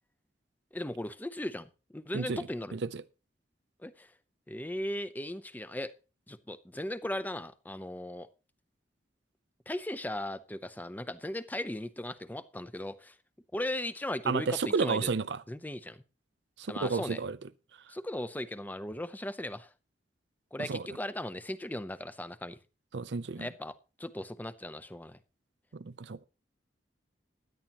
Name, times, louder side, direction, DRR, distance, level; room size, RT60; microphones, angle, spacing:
voice 1, 0.7-2.8 3.8-4.1 4.5-5.9 6.3-8.3 9.7-13.1 13.5-15.1 15.5-16.0 16.7-17.2 17.9-19.7 20.5-22.6 23.4-25.2, left 1 dB, 10° left, 0.6 m, -37 dB
voice 2, 2.1-2.4 2.7-3.0 14.3-15.4 16.6-17.4 20.6-20.8 22.9-23.5 25.7-26.2, right 4 dB, 75° right, 0.6 m, -31 dB
16.0 x 11.0 x 3.0 m
head